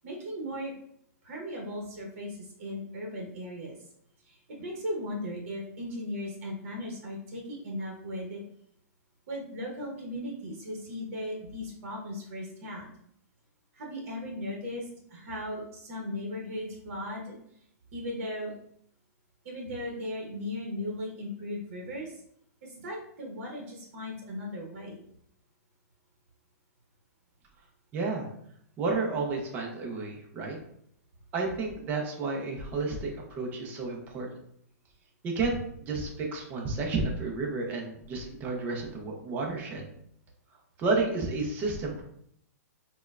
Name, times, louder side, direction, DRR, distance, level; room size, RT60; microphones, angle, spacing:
voice 1, 0.0-0.7 1.2-3.7 4.2-8.4 9.3-12.9 13.7-17.4 17.9-18.5 19.4-22.2 22.6-25.0, left 1 dB, 50° right, -1 dB, 0.9 m, -37 dB
voice 2, 27.9-28.3 28.8-30.6 31.3-34.3 35.2-39.8 40.8-42.0, right 3 dB, 20° right, 0 dB, 0.5 m, -31 dB
4.2 x 2.2 x 2.3 m, 0.68 s
hypercardioid pair, 155°, 9 cm